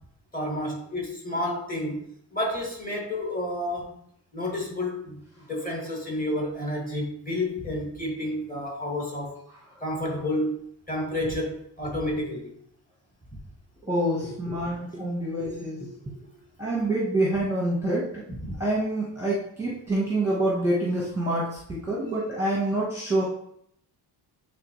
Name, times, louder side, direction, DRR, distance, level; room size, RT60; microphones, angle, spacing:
voice 1, 0.3-2.0 2.3-4.0 4.3-9.4 9.8-10.6 10.9-12.5 14.6-14.7 18.3-18.5, left 1 dB, 20° left, -3 dB, 2.2 m, -30 dB
voice 2, 13.8-15.9 16.6-18.2 18.6-23.2, right 1 dB, 5° right, -5 dB, 1.2 m, -26 dB
8.8 x 3.7 x 3.2 m, 0.68 s
cardioid pair, 160°, 43 cm